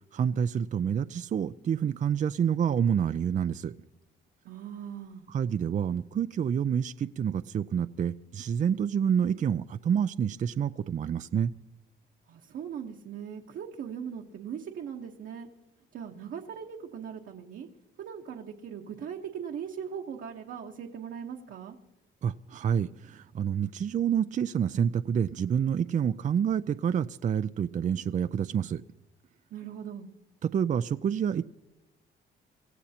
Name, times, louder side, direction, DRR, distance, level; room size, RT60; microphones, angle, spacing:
voice 1, 0.1-3.7 5.3-11.5 22.2-28.8 30.4-31.5, right 8 dB, 40° right, 11 dB, 0.4 m, -28 dB
voice 2, 4.4-5.2 12.3-15.5 15.9-17.7 18.0-21.8 29.5-30.1, right 8 dB, 70° right, 0 dB, 1.2 m, -39 dB
26.0 x 15.0 x 2.9 m, 1.0 s
cardioid pair, 90°, 20 cm